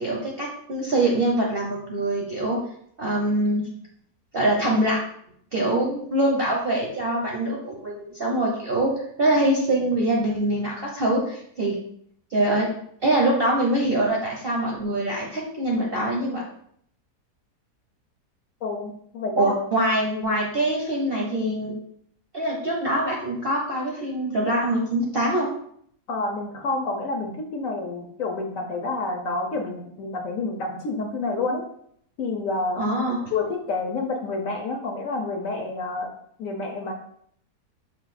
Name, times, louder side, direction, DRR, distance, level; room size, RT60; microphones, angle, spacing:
voice 1, 0.0-2.6 3.0-3.7 4.3-5.0 5.5-8.9 9.2-11.8 12.3-12.7 13.0-16.4 19.4-21.7 22.3-25.5 32.8-33.2, right 1 dB, 55° right, -2 dB, 0.6 m, -24 dB
voice 2, 18.6-19.5 26.1-31.6 32.2-32.8 33.3-36.1 36.4-36.9, left 3 dB, 65° left, 2 dB, 0.9 m, -28 dB
5.5 x 2.4 x 4.0 m, 0.67 s
omnidirectional pair, 1.7 m